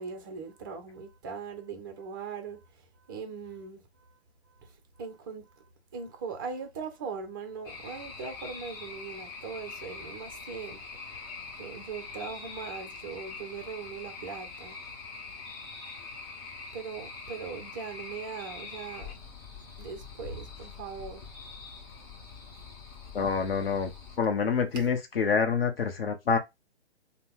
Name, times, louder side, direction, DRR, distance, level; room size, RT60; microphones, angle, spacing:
voice 1, 0.0-2.6 3.1-4.1 4.6-4.7 5.0-5.6 5.9-10.8 11.1-11.2 11.5-14.8 16.7-19.1 19.8-21.2 24.7-24.9, right 5 dB, 20° right, 0.5 m, -40 dB
sound 1, 7.7-24.2, left 4 dB, 25° left, 0.7 m, -44 dB
voice 2, 23.1-23.9 24.2-26.4, left 5 dB, 60° left, 0.8 m, -27 dB
2.7 x 2.1 x 3.6 m
figure-of-eight pair, 140°, 33 cm